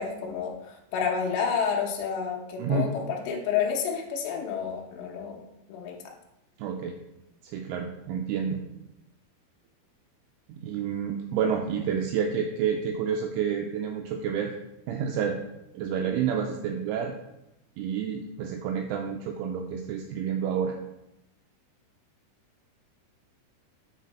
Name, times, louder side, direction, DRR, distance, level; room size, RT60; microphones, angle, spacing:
voice 1, 0.0-5.4 5.7-6.0, left 6 dB, 70° left, 0 dB, 2.8 m, -30 dB
voice 2, 2.6-2.9 6.6-7.0 7.4-8.6 10.5-14.5 14.9-15.4 15.7-17.1 17.8-20.8, right 7 dB, 85° right, 3 dB, 2.8 m, -29 dB
9.9 x 4.2 x 4.2 m, 0.89 s
omnidirectional pair, 5.9 m